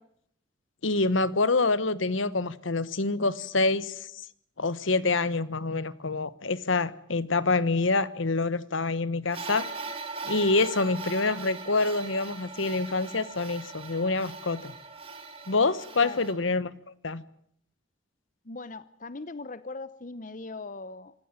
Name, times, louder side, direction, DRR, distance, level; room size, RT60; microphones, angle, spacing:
voice 1, 0.8-4.2 4.6-9.7 10.2-14.7 15.5-16.7 17.0-17.2, left 3 dB, 80° left, 16 dB, 1.2 m, -26 dB
sound 1, 9.3-16.3, right 4 dB, 30° right, 3.6 m, -40 dB
voice 2, 18.4-21.1, left 3 dB, 40° left, 15 dB, 0.9 m, -40 dB
26.5 x 16.0 x 9.0 m, 0.70 s
head